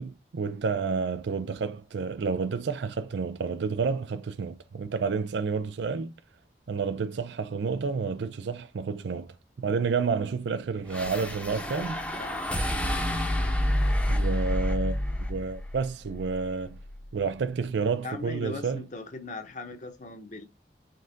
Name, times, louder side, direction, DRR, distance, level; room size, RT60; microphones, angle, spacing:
voice 1, 0.0-6.1 6.7-12.0 14.1-15.0 15.3-16.8 17.1-18.8, right 5 dB, 80° right, 0.4 m, -30 dB
sound 1, 10.9-17.3, left 1 dB, 5° left, 0.8 m, -29 dB
voice 2, 18.0-20.5, left 2 dB, 45° left, 0.9 m, -39 dB
5.3 x 3.7 x 2.7 m
head